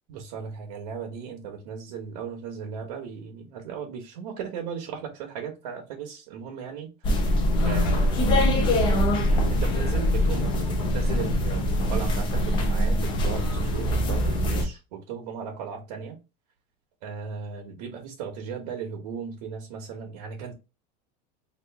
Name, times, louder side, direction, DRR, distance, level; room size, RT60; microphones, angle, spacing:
voice 1, 0.1-7.3 7.6-8.5 9.5-16.2 17.0-20.5, right 6 dB, 90° right, 1.0 m, -37 dB
sound 1, 7.0-14.7, left 1 dB, 25° left, 0.5 m, -23 dB
2.9 x 2.5 x 3.4 m
cardioid pair, 180°, 20 cm